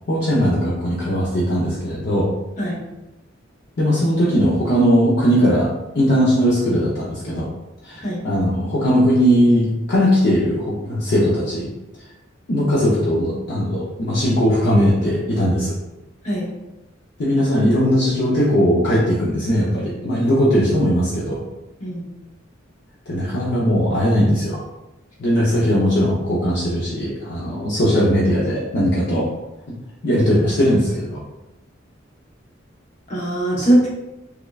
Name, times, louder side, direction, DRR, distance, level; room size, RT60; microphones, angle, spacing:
voice 1, 0.1-2.3 3.8-5.7 5.9-7.5 7.8-11.7 12.5-15.7 17.2-21.4 23.1-24.6 25.2-29.2 29.7-29.8 30.0-31.2 33.6-33.7, equal, 60° left, -6 dB, 0.6 m, -19 dB
voice 2, 33.1-33.9, right 1 dB, 40° left, -4 dB, 1.0 m, -20 dB
3.5 x 3.2 x 2.3 m, 0.99 s
head